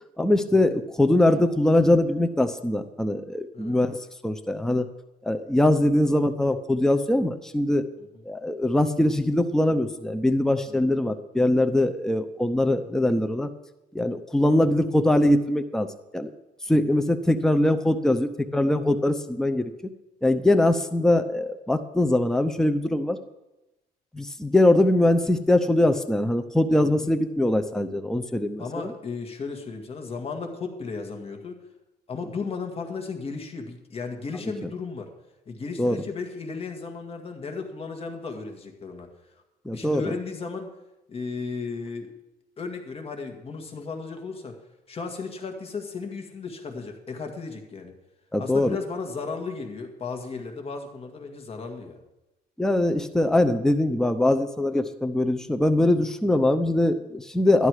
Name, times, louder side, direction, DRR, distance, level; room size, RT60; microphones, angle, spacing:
voice 1, 0.2-4.9 5.2-7.8 8.2-13.5 13.9-15.9 16.1-16.3 16.7-19.7 20.2-23.2 24.1-28.9 35.8-36.0 39.6-40.1 48.3-48.8 52.6-57.7, left 1 dB, 5° left, 8 dB, 0.7 m, -22 dB
voice 2, 28.6-31.6 32.1-35.1 35.5-39.1 39.7-40.7 41.1-42.1 42.6-44.6 44.9-48.0 48.4-52.0 56.0-56.1, left 4 dB, 35° left, 4 dB, 2.0 m, -35 dB
12.0 x 11.0 x 4.9 m, 0.95 s
cardioid pair, 110°, 17 cm